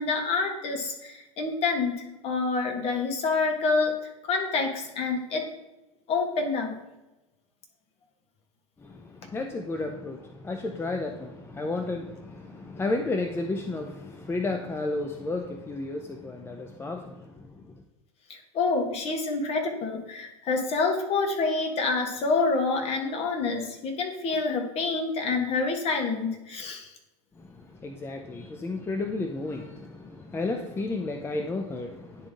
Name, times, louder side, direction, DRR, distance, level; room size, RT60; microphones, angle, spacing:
voice 1, 0.0-2.0 2.2-4.0 4.3-5.5 6.1-6.8 18.3-26.9, left 4 dB, 40° left, 3 dB, 1.5 m, -27 dB
voice 2, 8.8-17.8 27.3-32.3, left 2 dB, 15° left, 5 dB, 0.5 m, -33 dB
10.0 x 3.7 x 3.6 m, 0.98 s
hypercardioid pair, 85°, 16 cm